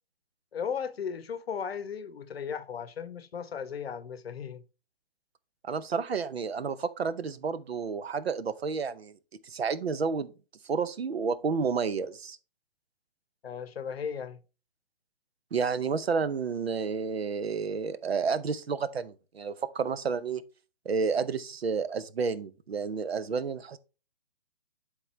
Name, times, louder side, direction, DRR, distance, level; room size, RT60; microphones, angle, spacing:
voice 1, 0.5-4.6 13.4-14.4, left 7 dB, 80° left, 0.7 m, -36 dB
voice 2, 5.6-9.1 9.4-10.3 10.6-12.4 15.5-20.4 20.9-23.8, right 5 dB, 85° right, 0.7 m, -30 dB
10.5 x 3.8 x 3.1 m
hypercardioid pair, 135°, 30 cm